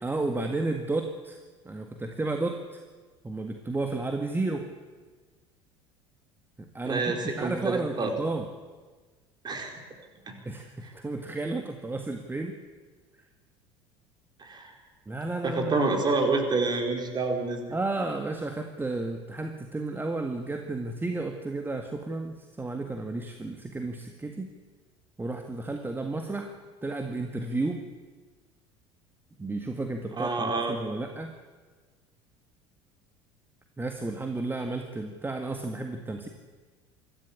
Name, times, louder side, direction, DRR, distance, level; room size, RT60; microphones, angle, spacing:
voice 1, 0.0-2.8 3.2-4.7 6.6-8.5 10.5-12.6 15.1-15.9 17.7-24.5 25.2-26.5 26.8-27.8 29.4-31.3 33.8-36.3, right 2 dB, 15° right, 5 dB, 1.9 m, -32 dB
voice 2, 6.8-8.1 9.4-9.8 10.3-10.4 10.8-10.9 14.4-14.7 15.4-17.6 30.2-30.7, right 3 dB, 30° right, 4 dB, 4.5 m, -28 dB
24.5 x 14.5 x 8.6 m, 1.4 s
figure-of-eight pair, 65°, 15 cm